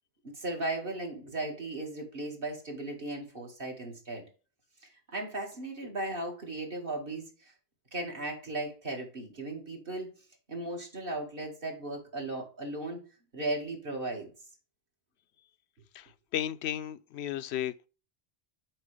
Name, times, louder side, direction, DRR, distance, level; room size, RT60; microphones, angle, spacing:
voice 1, 0.2-4.3 4.8-7.5 7.9-10.1 10.5-13.0 13.3-14.3, right 2 dB, 55° right, 2.2 m, -36 dB
voice 2, 15.9-17.9, left 11 dB, 75° left, 0.8 m, -34 dB
8.7 x 4.6 x 3.3 m
omnidirectional pair, 1.1 m